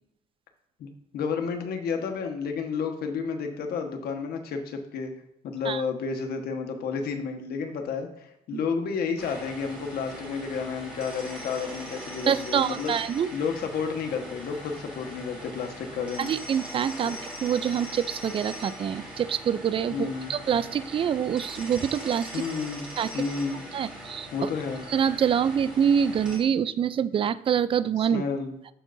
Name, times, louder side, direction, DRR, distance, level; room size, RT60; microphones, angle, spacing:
voice 1, 0.8-5.1 5.4-12.9 13.3-16.3 19.9-20.3 22.3-22.9 23.1-23.6 24.3-24.8 28.1-28.5, left 5 dB, 65° left, 4 dB, 1.3 m, -31 dB
sound 1, 9.2-26.4, equal, 5° right, 3.0 m, -41 dB
voice 2, 12.3-13.3 16.2-22.4 23.0-23.2 23.7-24.5 24.9-28.2, right 8 dB, 30° right, 15 dB, 0.4 m, -26 dB
13.5 x 4.6 x 2.6 m, 0.81 s
cardioid pair, 110°, 17 cm